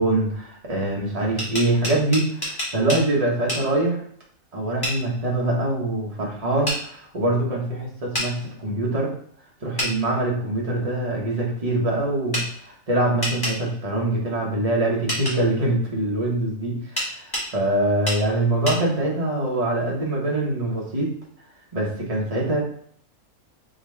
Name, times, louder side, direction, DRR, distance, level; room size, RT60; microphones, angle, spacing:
voice 1, 0.0-4.0 4.5-9.1 9.6-21.1 21.7-22.6, right 1 dB, 30° right, -3 dB, 1.0 m, -24 dB
sound 1, 1.2-3.0 3.5-3.6 4.8-5.0 6.7-6.8 8.1-8.3 9.8-9.9 12.3-12.5 13.2-13.6 15.1-15.4 17.0-17.5 18.1-18.2 18.7-18.8, equal, 15° left, 1.1 m, -27 dB
3.7 x 2.9 x 3.3 m, 0.62 s
omnidirectional pair, 1.5 m